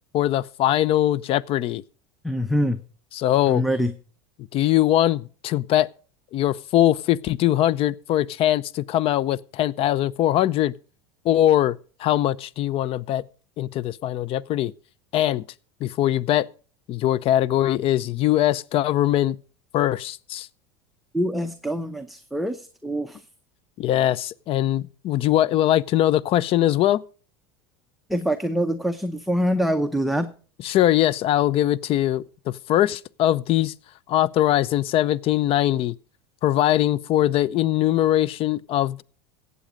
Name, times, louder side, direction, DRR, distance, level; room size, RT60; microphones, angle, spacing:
voice 1, 0.1-1.8 3.1-3.6 4.5-5.9 6.3-10.7 11.3-13.2 13.6-14.7 15.1-15.4 15.8-16.5 16.9-19.4 19.7-20.5 23.8-27.0 30.6-32.2 32.7-33.7 34.1-35.9 36.4-39.0, left 13 dB, 45° left, 0.6 m, -21 dB
voice 2, 2.2-2.8 3.5-3.9 21.1-23.2 28.1-30.3, equal, ahead, 0.8 m, -24 dB
15.0 x 8.4 x 5.1 m
supercardioid pair, 105°, 13 cm